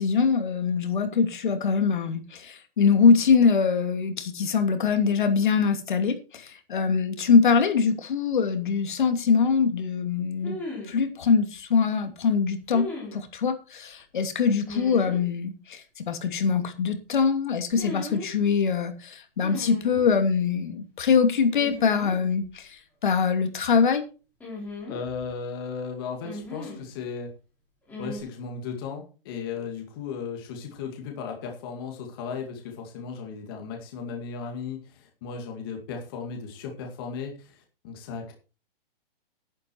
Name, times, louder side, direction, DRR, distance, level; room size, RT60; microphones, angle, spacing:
voice 1, 0.0-10.6 10.9-24.0, left 5 dB, 55° left, 7 dB, 2.7 m, -23 dB
sound 1, 8.5-8.6 10.4-11.0 12.7-13.2 14.7-15.2 17.7-18.3 19.4-20.1 21.5-22.2 22.4-22.5 24.4-25.3 26.2-26.9 27.9-28.2, left 2 dB, 5° left, 3.6 m, -37 dB
voice 2, 24.9-27.3 28.0-38.3, left 6 dB, 25° left, 2 dB, 2.2 m, -36 dB
11.0 x 11.0 x 4.6 m, 0.33 s
hypercardioid pair, 180°, 29 cm